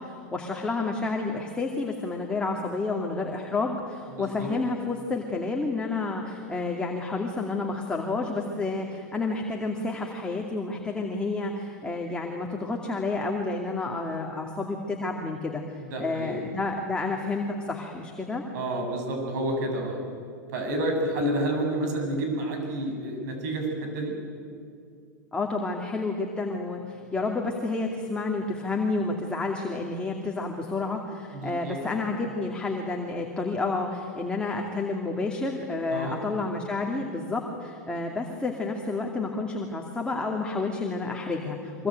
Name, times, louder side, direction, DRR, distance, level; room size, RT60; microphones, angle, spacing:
voice 1, 0.0-18.4 25.3-41.9, left 3 dB, 10° left, 0 dB, 2.5 m, -30 dB
voice 2, 4.1-4.5 15.8-16.5 18.5-20.0 20.5-24.2 26.9-27.0 31.3-31.8 35.9-36.2 41.8-41.9, right 1 dB, 65° right, 3 dB, 7.9 m, -30 dB
24.0 x 22.0 x 9.2 m, 2.3 s
hypercardioid pair, 120°, 10 cm